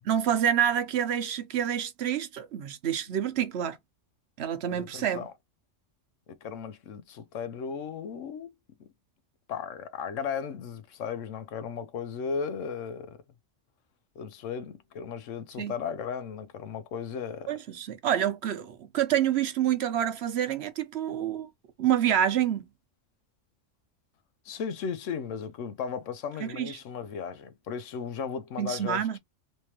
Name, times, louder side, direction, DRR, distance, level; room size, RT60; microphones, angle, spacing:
voice 1, 0.1-3.8 4.4-5.2 15.6-15.7 17.5-21.5 21.8-22.7 26.4-26.8 28.6-29.2, right 10 dB, 65° right, 1.0 m, -27 dB
voice 2, 4.7-5.3 6.3-8.5 8.8-8.9 9.5-13.2 14.2-17.5 24.4-29.2, left 6 dB, 85° left, 1.1 m, -36 dB
3.3 x 3.1 x 2.8 m
omnidirectional pair, 1.3 m